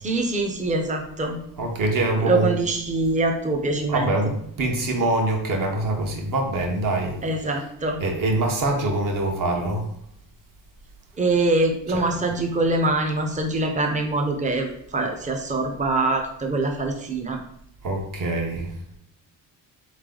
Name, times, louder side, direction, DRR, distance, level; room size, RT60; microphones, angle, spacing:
voice 1, 0.0-1.4 2.2-4.1 7.2-8.0 11.2-17.4, right 2 dB, 15° right, 3 dB, 0.7 m, -24 dB
voice 2, 1.6-2.5 3.9-7.2 8.0-9.9 11.9-12.2 17.8-18.7, right 2 dB, 50° right, 2 dB, 1.2 m, -24 dB
4.3 x 3.2 x 3.8 m, 0.73 s
cardioid pair, 125°, 43 cm